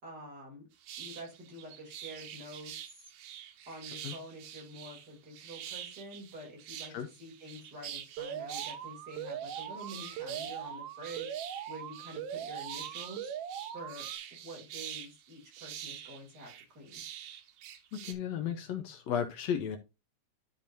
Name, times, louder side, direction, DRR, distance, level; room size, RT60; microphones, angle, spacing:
voice 1, 0.0-0.7 1.0-3.1 3.7-11.3 11.7-13.3 13.7-14.1 14.4-17.0, equal, 35° right, 3.6 m, -47 dB
sound 1, 0.8-18.1, right 10 dB, 90° right, 2.4 m, -46 dB
Alarm, 8.2-14.2, right 9 dB, 70° right, 1.6 m, -41 dB
voice 2, 17.9-19.8, left 8 dB, 75° left, 1.8 m, -34 dB
12.0 x 5.3 x 2.7 m
omnidirectional pair, 3.3 m